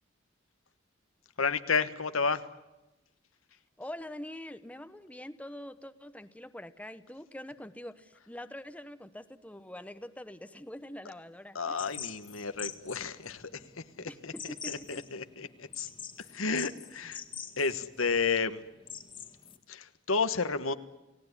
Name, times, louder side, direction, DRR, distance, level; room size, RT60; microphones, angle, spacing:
voice 1, 1.4-2.5 11.5-15.9 16.3-17.2 17.6-18.6 19.7-20.7, left 5 dB, 85° left, 11 dB, 1.4 m, -32 dB
voice 2, 3.8-11.8 14.1-15.0, left 1 dB, 5° left, 11 dB, 1.0 m, -44 dB
sound 1, 11.8-19.6, left 7 dB, 25° left, 1.8 m, -45 dB
29.5 x 18.0 x 9.9 m, 1.0 s
head